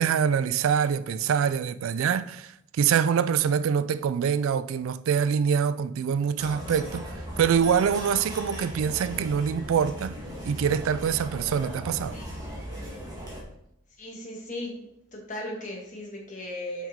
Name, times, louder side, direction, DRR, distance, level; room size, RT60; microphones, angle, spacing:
voice 1, 0.0-10.2 10.4-12.2, right 7 dB, 75° right, 0.3 m, -25 dB
sound 1, 6.4-13.4, equal, 20° right, 1.6 m, -38 dB
voice 2, 12.1-12.4 14.0-14.8 15.1-16.9, left 1 dB, 35° left, 1.5 m, -37 dB
6.0 x 5.5 x 3.6 m
head